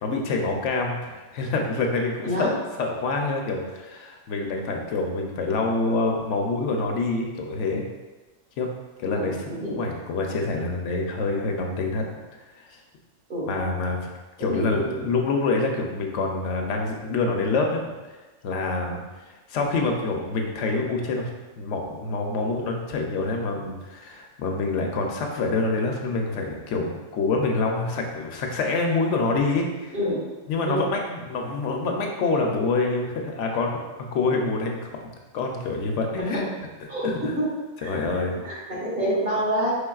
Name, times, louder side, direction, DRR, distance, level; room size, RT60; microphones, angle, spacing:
voice 1, 0.0-7.8 8.6-8.7 9.0-9.4 9.7-12.0 12.6-12.8 13.5-14.1 14.4-17.8 18.4-21.3 21.6-29.9 30.5-33.8 34.1-34.9 35.3-36.4 37.0-37.3 37.8-38.4, left 3 dB, 75° left, 2 dB, 0.9 m, -26 dB
voice 2, 14.5-15.0 29.9-30.2 30.6-30.8 36.2-36.4 36.9-37.5 37.8-39.7, equal, 45° right, -8 dB, 1.6 m, -27 dB
5.1 x 3.4 x 2.3 m, 1.2 s
omnidirectional pair, 1.3 m